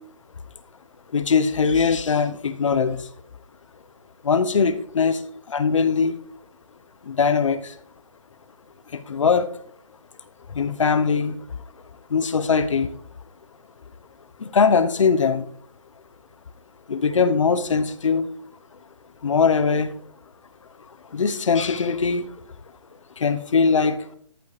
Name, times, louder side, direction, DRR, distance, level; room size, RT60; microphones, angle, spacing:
voice 1, 1.1-3.0 4.2-5.2 5.5-6.1 7.1-7.6 8.9-9.5 10.5-11.4 12.1-12.9 14.4-15.4 16.9-18.3 19.2-19.9 21.1-22.3 23.2-24.0, left 5 dB, 65° left, 12 dB, 1.0 m, -21 dB
14.0 x 9.3 x 3.3 m, 0.64 s
hypercardioid pair, 165°, 17 cm